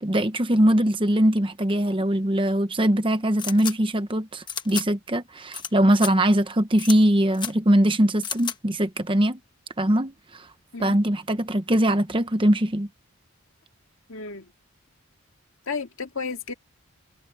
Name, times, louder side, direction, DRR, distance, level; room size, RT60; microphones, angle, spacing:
voice 1, 0.0-9.4 9.8-10.5 10.8-12.9, right 1 dB, 25° right, 1.0 m, -21 dB
sound 1, 3.4-3.7 4.5-4.8 5.5-5.7 5.9-6.1 6.8-7.0 7.3-7.5 8.2-8.5, left 7 dB, 20° left, 1.2 m, -31 dB
voice 2, 14.1-14.5 15.7-16.5, left 4 dB, 60° left, 2.2 m, -32 dB
head